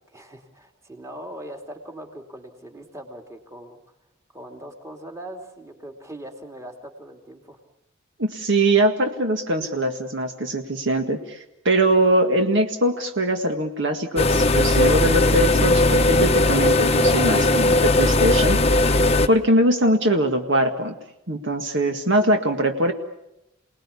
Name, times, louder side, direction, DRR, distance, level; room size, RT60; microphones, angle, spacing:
voice 1, 0.1-3.9 4.3-7.6, right 1 dB, 15° right, 3 dB, 2.9 m, -40 dB
voice 2, 8.2-18.6 19.3-20.9 21.3-22.9, right 1 dB, 60° right, 5 dB, 1.9 m, -22 dB
sound 1, 14.2-19.3, left 2 dB, 30° left, 1.0 m, -18 dB
29.5 x 19.5 x 8.5 m, 0.86 s
head